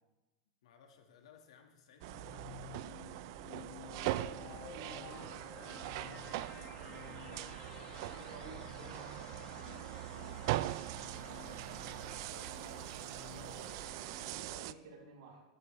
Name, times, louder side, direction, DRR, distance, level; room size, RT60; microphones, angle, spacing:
voice 1, 0.6-2.6 7.8-8.3 9.8-11.8 13.3-13.4 13.7-13.9, left 6 dB, 80° left, 4 dB, 1.6 m, -62 dB
sound 1, 2.0-14.5, left 12 dB, 25° left, 0.4 m, -53 dB
sound 2, 2.0-14.7, right 16 dB, 45° right, 0.3 m, -41 dB
voice 2, 3.8-7.5 7.9-9.3 12.5-12.9 13.3-15.4, right 3 dB, 70° right, -4 dB, 4.1 m, -54 dB
13.5 x 12.0 x 3.2 m, 1.1 s
supercardioid pair, 170°, 3 cm